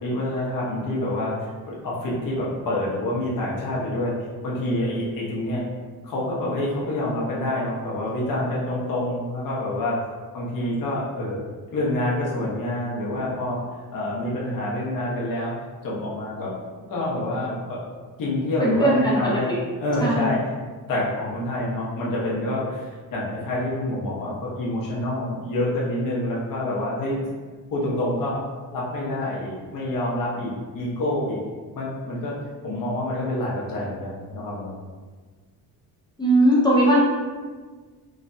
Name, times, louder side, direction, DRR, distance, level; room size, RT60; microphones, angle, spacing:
voice 1, 0.0-4.1 4.4-5.6 6.0-10.0 10.3-11.4 11.7-13.6 13.9-15.6 15.8-16.5 16.9-17.8 18.2-19.5 19.8-20.4 20.9-27.2 27.7-28.4 28.7-31.4 31.7-32.4 32.6-34.7, left 1 dB, 55° left, -5 dB, 0.9 m, -27 dB
voice 2, 18.6-19.6 20.0-20.3 36.2-37.0, right 1 dB, 10° left, -7 dB, 0.4 m, -19 dB
3.2 x 2.1 x 2.6 m, 1.4 s
cardioid pair, 135°, 39 cm